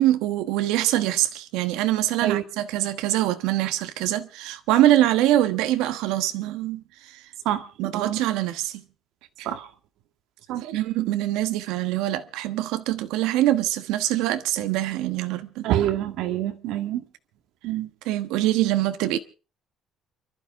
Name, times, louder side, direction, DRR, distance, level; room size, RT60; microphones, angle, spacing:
voice 1, 0.0-7.2 7.8-8.8 9.4-9.5 10.6-15.7 18.0-19.2, right 14 dB, 90° right, 1.2 m, -24 dB
voice 2, 15.6-17.0 17.6-17.9, right 12 dB, 70° right, 2.1 m, -26 dB
29.5 x 12.0 x 3.6 m
cardioid pair, 160°, 0 cm